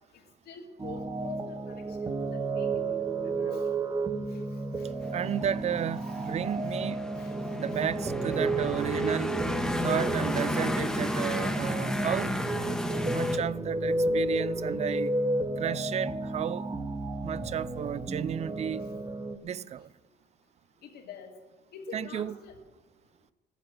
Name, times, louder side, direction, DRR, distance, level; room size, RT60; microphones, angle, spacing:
voice 1, 0.1-2.9 3.2-3.8 4.3-4.4 4.8-4.9 6.0-6.3 6.7-6.8 7.2-7.4 7.7-7.9 8.3-8.4 8.8-9.0 9.3-9.5 9.9-10.0 20.8-21.3 21.7-22.6, left 6 dB, 70° left, 2.2 m, -47 dB
sound 1, 0.8-19.4, right 2 dB, 20° right, 0.9 m, -32 dB
sound 2, 5.0-13.4, left 1 dB, 5° left, 1.1 m, -33 dB
voice 2, 5.1-7.0 7.5-9.3 9.8-12.3 13.1-15.2 15.6-16.7 17.2-18.8 19.4-19.9 21.9-22.3, right 9 dB, 40° right, 0.4 m, -33 dB
15.5 x 10.5 x 6.3 m
cardioid pair, 110°, 17 cm